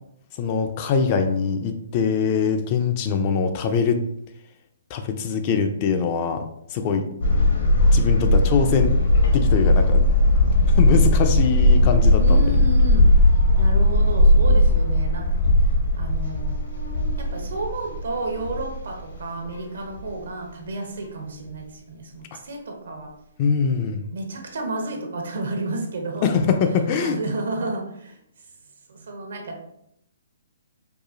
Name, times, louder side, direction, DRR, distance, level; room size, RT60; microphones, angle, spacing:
voice 1, 0.4-4.0 4.9-6.4 6.7-7.1 7.9-8.9 9.3-10.0 10.8-12.4 23.4-24.1 26.2-27.2, left 5 dB, 35° left, 6 dB, 0.4 m, -22 dB
sound 1, 7.2-19.2 19.5-19.6 20.0-20.1, left 1 dB, 75° left, 1.2 m, -18 dB
voice 2, 12.2-13.1 13.6-15.3 16.0-16.6 17.2-23.1 24.1-26.3 27.0-28.2 28.9-29.6, right 2 dB, 75° right, 2 dB, 0.9 m, -31 dB
4.7 x 2.3 x 2.5 m, 0.78 s
hypercardioid pair, 145°, 0 cm